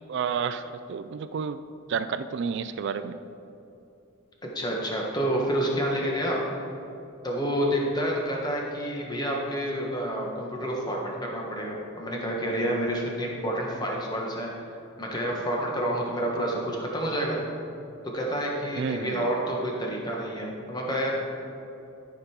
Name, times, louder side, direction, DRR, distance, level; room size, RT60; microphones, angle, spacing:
voice 1, 0.1-1.6 1.9-3.2 18.8-19.3, right 6 dB, 55° right, 10 dB, 0.3 m, -30 dB
voice 2, 4.4-6.5 7.2-14.5 15.0-17.4 18.0-21.1, equal, 20° left, -2 dB, 1.3 m, -29 dB
13.0 x 5.3 x 4.4 m, 2.8 s
head